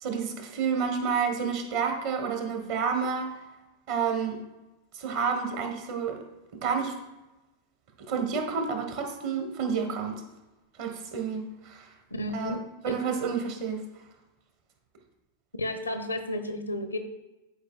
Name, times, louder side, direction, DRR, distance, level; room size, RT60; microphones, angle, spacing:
voice 1, 0.0-3.3 3.9-4.4 4.9-6.2 6.5-6.9 8.1-10.2 10.8-11.9 12.3-12.6 12.8-13.8, right 6 dB, 50° right, 4 dB, 1.2 m, -29 dB
voice 2, 12.1-12.6 15.6-17.0, left 1 dB, 80° left, 7 dB, 0.6 m, -32 dB
11.0 x 4.7 x 2.3 m, 1.0 s
figure-of-eight pair, 90°, 0 cm